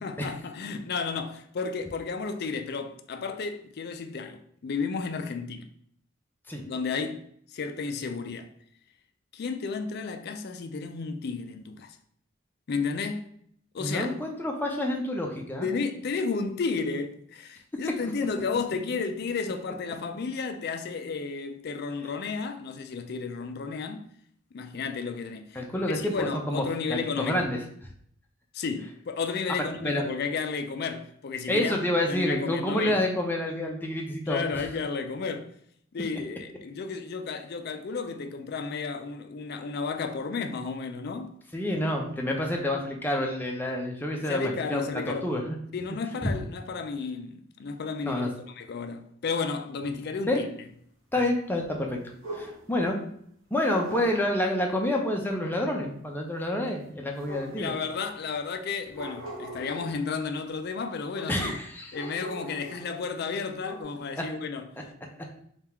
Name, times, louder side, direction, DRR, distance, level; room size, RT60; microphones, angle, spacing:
voice 1, 0.0-5.7 6.6-7.2 7.5-8.5 9.3-12.0 12.7-13.3 13.7-14.1 15.6-24.1 24.5-27.5 28.5-31.8 32.1-33.0 34.3-35.5 35.9-41.3 44.2-45.3 45.7-48.2 48.5-50.4 57.6-61.5 61.9-64.7, left 4 dB, 50° left, 0.4 m, -32 dB
voice 2, 13.8-15.7 18.0-18.1 25.5-26.6 26.9-27.6 29.8-30.0 31.5-34.6 41.5-45.6 46.2-46.3 48.0-48.3 49.9-50.0 50.3-50.4 51.1-52.0 52.3-53.0 53.5-57.7 61.3-62.1, left 1 dB, 10° left, 0.6 m, -28 dB
sound 1, 52.2-52.8 53.8-54.3 57.2-57.9 58.9-60.0 61.1-61.5 61.9-63.0 63.3-63.8, equal, 90° right, 1.1 m, -40 dB
3.6 x 2.4 x 4.3 m
head